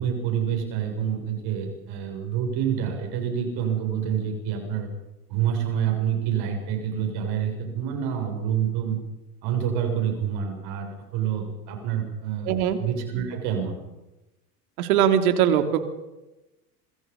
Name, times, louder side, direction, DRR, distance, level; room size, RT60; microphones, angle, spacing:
voice 1, 0.0-4.9 5.3-9.0 9.4-12.5 12.8-13.8, right 8 dB, 55° right, 4 dB, 6.8 m, -27 dB
voice 2, 12.4-12.8 14.8-15.8, right 9 dB, 70° right, 7 dB, 3.3 m, -21 dB
26.0 x 24.5 x 5.5 m, 1.0 s
hypercardioid pair, 90°, 45 cm